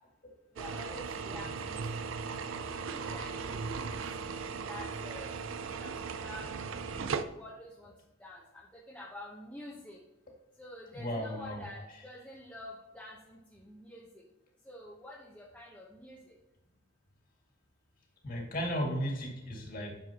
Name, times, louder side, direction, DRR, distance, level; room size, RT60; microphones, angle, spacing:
voice 1, 0.6-2.0 2.5-4.0 4.7-5.9 6.2-7.9 8.2-10.0 10.6-14.1 14.7-16.3, left 1 dB, 5° left, -5 dB, 1.0 m, -48 dB
sound 1, 0.6-7.2, right 5 dB, 75° right, 0.5 m, -37 dB
voice 2, 10.9-12.1 18.2-19.9, equal, 45° left, 0 dB, 2.2 m, -35 dB
10.0 x 6.9 x 2.9 m, 1.0 s
head